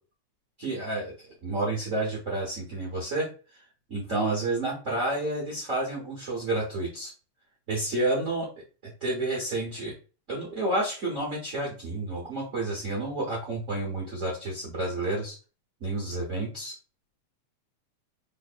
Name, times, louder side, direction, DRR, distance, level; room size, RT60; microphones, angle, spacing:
voice 1, 0.6-3.3 3.9-7.1 7.7-8.5 8.8-9.9 10.3-15.4 15.8-16.7, right 2 dB, 50° right, -4 dB, 0.9 m, -30 dB
3.7 x 3.7 x 2.5 m, 0.34 s
omnidirectional pair, 3.4 m